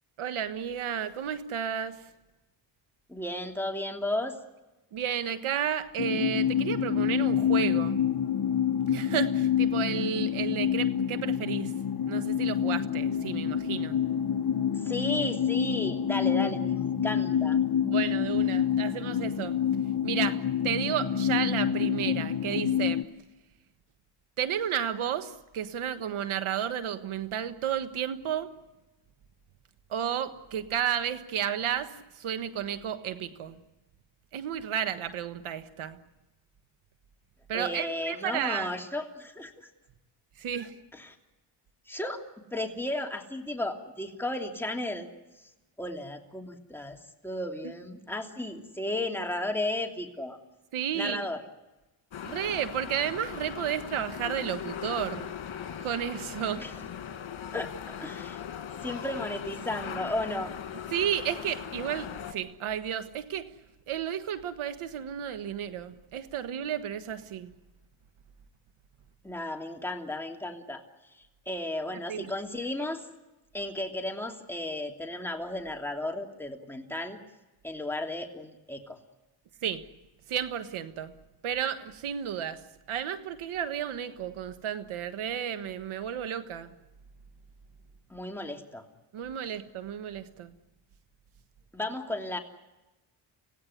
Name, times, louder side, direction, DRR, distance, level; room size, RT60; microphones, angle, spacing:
voice 1, 0.2-2.1 4.9-8.0 8.9-11.7 12.0-14.0 17.8-19.6 20.0-23.1 24.4-28.5 29.9-33.6 34.3-36.0 37.5-38.7 40.4-40.7 50.7-51.3 52.2-55.3 55.8-56.9 60.9-63.5 63.9-67.5 71.9-72.3 79.6-79.9 80.3-81.1 81.4-86.7 89.1-90.6, right 9 dB, 80° right, 1.5 m, -32 dB
voice 2, 3.1-4.4 14.7-17.6 37.5-39.7 40.6-40.7 40.9-41.1 41.9-42.2 42.5-45.1 45.8-47.0 47.2-50.4 50.9-51.4 56.6-56.7 57.5-58.4 58.8-60.5 69.2-70.8 71.5-73.0 73.5-77.2 77.6-79.0 88.1-88.8 91.7-92.4, left 1 dB, 5° left, 3.0 m, -34 dB
sound 1, 6.0-23.0, left 9 dB, 45° left, 1.3 m, -27 dB
sound 2, 52.1-62.3, left 8 dB, 70° left, 2.4 m, -39 dB
25.5 x 16.5 x 9.7 m
cardioid pair, 70°, 49 cm